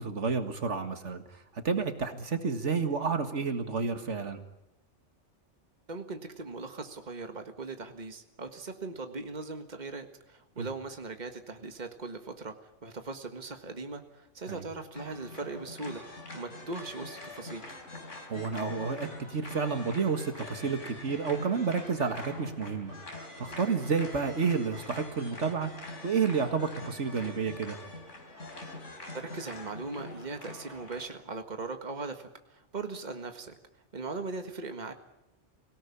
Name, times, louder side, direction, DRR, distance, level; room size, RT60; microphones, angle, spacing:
voice 1, 0.0-4.4 10.6-10.7 14.5-14.6 18.3-22.9 23.4-25.7 26.0-27.8, right 5 dB, 70° right, 8 dB, 2.0 m, -30 dB
voice 2, 5.9-17.8 29.1-33.6 33.9-34.9, right 3 dB, 35° right, 7 dB, 1.8 m, -39 dB
sound 1, 14.9-31.1, left 2 dB, 80° left, 4.5 m, -44 dB
25.0 x 17.5 x 9.8 m, 0.90 s
omnidirectional pair, 1.2 m